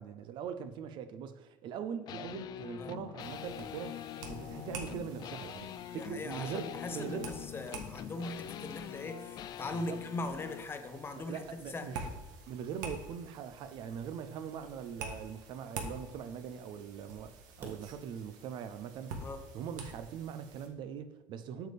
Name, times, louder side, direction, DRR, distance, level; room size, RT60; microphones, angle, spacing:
voice 1, 0.0-6.6 6.9-7.3 9.7-10.0 11.2-12.1 12.5-19.1 19.5-21.7, right 8 dB, 50° right, 0.6 m, -41 dB
sound 1, 2.1-10.8, left 11 dB, 45° left, 0.3 m, -44 dB
sound 2, 2.8-3.6 4.4-16.4 17.1-20.1, right 3 dB, 30° right, 2.2 m, -61 dB
sound 3, 3.2-20.7, right 3 dB, 80° right, 1.4 m, -48 dB
voice 2, 5.9-12.0 19.2-19.4, left 2 dB, 25° left, 0.8 m, -40 dB
8.0 x 6.6 x 3.5 m
supercardioid pair, 110°, 10 cm